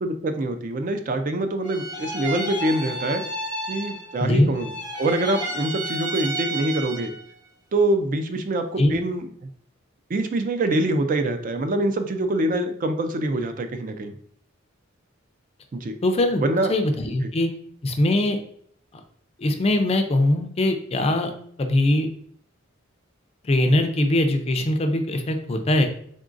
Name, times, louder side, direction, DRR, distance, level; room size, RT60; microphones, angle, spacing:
voice 1, 0.0-3.2 3.7-4.7 5.0-7.1 7.7-9.5 10.1-14.1 15.7-16.0 16.4-16.7, right 1 dB, 40° right, 7 dB, 0.4 m, -25 dB
sound 1, 1.6-4.3 4.5-7.3, right 1 dB, 20° right, 0.9 m, -31 dB
voice 2, 4.2-4.5 8.8-9.0 16.0-16.4 16.7-17.5 17.8-18.4 19.4-21.3 21.6-22.1 23.5-25.9, left 1 dB, 30° left, 6 dB, 0.4 m, -21 dB
3.8 x 3.6 x 2.5 m, 0.63 s
head